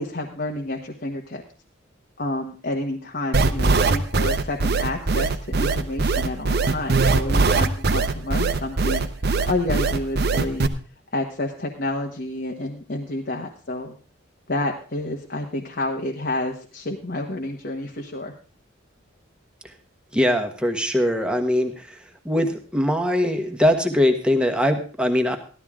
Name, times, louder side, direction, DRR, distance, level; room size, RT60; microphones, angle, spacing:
voice 1, 0.0-1.4 2.2-9.1 9.5-10.6 11.1-14.0 14.5-18.3, left 1 dB, 50° left, 1 dB, 1.2 m, -29 dB
sound 1, 3.3-10.7, right 3 dB, 50° right, 0.8 m, -20 dB
voice 2, 20.1-22.0 22.2-25.4, left 1 dB, 5° right, 4 dB, 1.3 m, -21 dB
15.0 x 12.0 x 3.7 m, 0.38 s
head